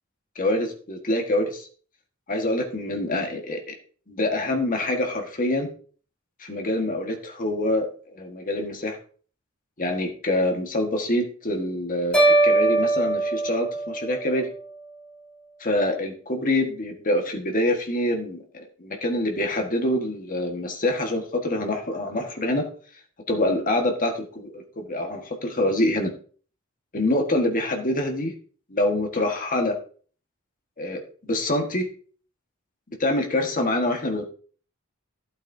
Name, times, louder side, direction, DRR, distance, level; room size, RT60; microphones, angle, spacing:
voice 1, 0.3-1.7 2.3-3.8 4.1-5.7 6.4-7.9 8.1-9.0 9.8-14.5 15.6-22.7 23.3-26.1 26.9-28.3 28.7-29.7 30.8-31.9 33.0-34.3, left 1 dB, 40° left, 3 dB, 1.5 m, -25 dB
sound 1, 12.1-14.4, right 2 dB, 5° left, 3.0 m, -21 dB
12.0 x 8.2 x 2.7 m, 0.44 s
head